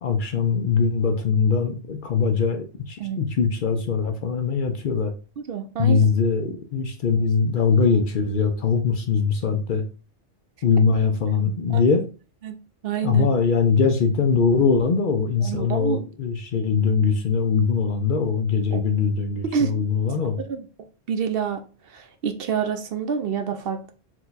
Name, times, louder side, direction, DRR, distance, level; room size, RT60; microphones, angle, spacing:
voice 1, 0.0-5.1 5.8-9.8 10.6-12.0 13.0-20.4, left 5 dB, 55° left, 5 dB, 0.6 m, -22 dB
voice 2, 5.4-6.1 11.7-11.9 12.4-12.6 12.8-13.3 15.4-16.0 18.7-18.8 19.5-19.7 20.5-20.6 21.1-21.6 21.9-23.9, right 7 dB, 65° right, 6 dB, 0.7 m, -27 dB
4.5 x 2.3 x 3.9 m, 0.35 s
omnidirectional pair, 1.2 m